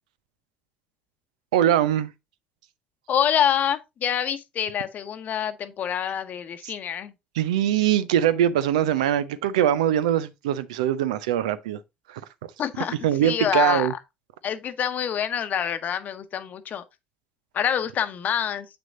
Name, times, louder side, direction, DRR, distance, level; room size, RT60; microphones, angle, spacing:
voice 1, 1.5-2.1 7.4-11.8 12.1-12.2 13.0-13.9, right 10 dB, 75° right, 0.6 m, -22 dB
voice 2, 3.1-7.1 12.6-13.0 13.2-14.0 14.4-16.8 17.5-18.7, left 9 dB, 45° left, 0.9 m, -26 dB
8.0 x 6.1 x 2.5 m
figure-of-eight pair, 55°, 4 cm